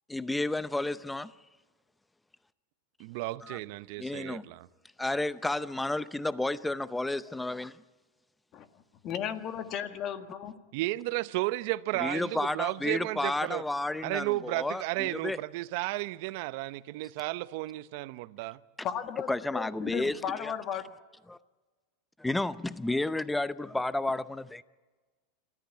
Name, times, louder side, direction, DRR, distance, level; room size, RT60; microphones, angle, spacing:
voice 1, 0.1-1.3 3.4-3.6 4.0-4.4 5.0-7.8 12.0-15.4 19.3-20.5 21.3-21.4 22.2-24.6, left 2 dB, 5° left, 0.6 m, -31 dB
voice 2, 3.0-4.7 10.7-13.6 14.0-18.6, right 19 dB, 60° right, 0.8 m, -33 dB
voice 3, 9.0-10.6 18.8-20.8, left 9 dB, 40° left, 1.7 m, -35 dB
27.0 x 13.5 x 8.4 m
supercardioid pair, 130°, 0 cm